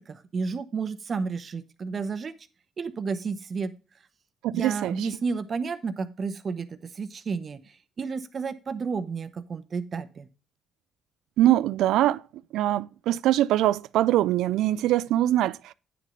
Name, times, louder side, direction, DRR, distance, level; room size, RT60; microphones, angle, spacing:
voice 1, 0.0-2.3 2.8-3.7 4.5-7.6 8.0-10.3, right 5 dB, 45° right, 0.9 m, -31 dB
voice 2, 4.4-5.1 11.4-12.2 12.5-15.7, right 13 dB, 85° right, 0.3 m, -23 dB
9.3 x 6.5 x 3.8 m
cardioid pair, 90°, 0 cm